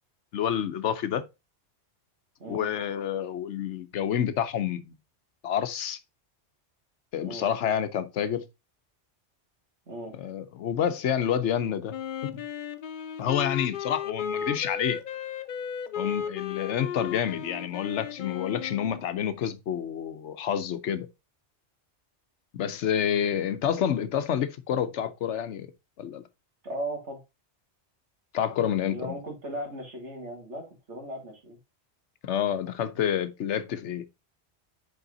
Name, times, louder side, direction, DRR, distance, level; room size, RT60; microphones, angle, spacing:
voice 1, 0.3-1.2 2.5-4.9 5.4-6.0 7.1-8.4 10.2-12.0 12.2-12.4 13.2-15.0 16.0-21.1 22.5-25.7 26.0-26.2 28.3-29.1 32.2-34.0, left 9 dB, 85° left, 1.1 m, -28 dB
voice 2, 2.4-2.7 7.2-7.5 9.9-10.1 26.6-27.2 28.9-31.6, right 1 dB, 80° right, 2.4 m, -37 dB
Wind instrument woodwind instrument, 11.9-19.0, left 8 dB, 55° left, 0.6 m, -35 dB
5.4 x 4.8 x 3.9 m
omnidirectional pair, 1.2 m